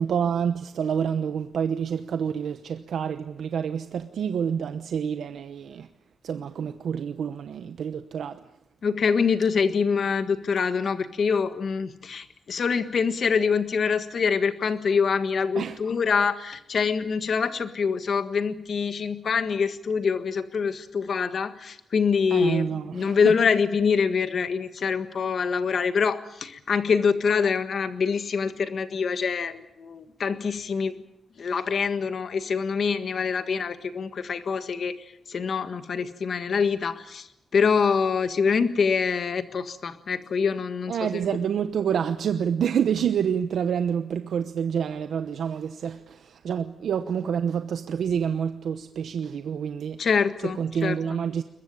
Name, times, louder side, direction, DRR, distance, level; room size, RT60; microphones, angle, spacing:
voice 1, 0.0-5.9 6.2-8.4 15.6-15.8 22.3-23.3 40.9-50.0 50.4-51.4, right 7 dB, 70° right, 1.0 m, -28 dB
voice 2, 8.8-22.7 22.9-31.0 31.4-34.9 35.3-37.3 37.5-41.2 50.0-51.0, left 5 dB, 50° left, 1.6 m, -25 dB
22.0 x 22.0 x 8.7 m
wide cardioid pair, 175°, 0 cm